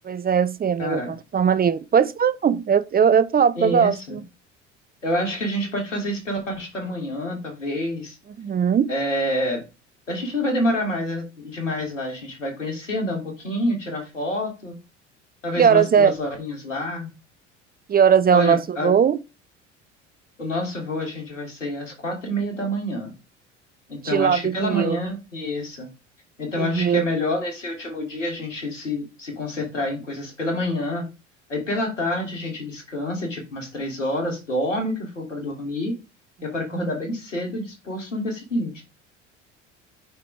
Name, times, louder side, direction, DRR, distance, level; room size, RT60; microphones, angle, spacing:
voice 1, 0.1-1.0 1.3-4.2 8.4-8.9 15.6-16.1 17.9-19.2 24.0-25.0 26.6-27.1 36.7-36.9, right 7 dB, 25° right, 0.7 m, -19 dB
voice 2, 0.8-1.1 3.6-4.2 5.0-8.2 8.9-9.6 10.1-14.7 15.4-17.1 18.3-18.9 20.4-23.1 23.9-25.9 26.4-31.1 31.5-36.0 36.4-38.8, left 1 dB, 85° left, 3.2 m, -27 dB
8.6 x 5.8 x 3.6 m
figure-of-eight pair, 65°, 37 cm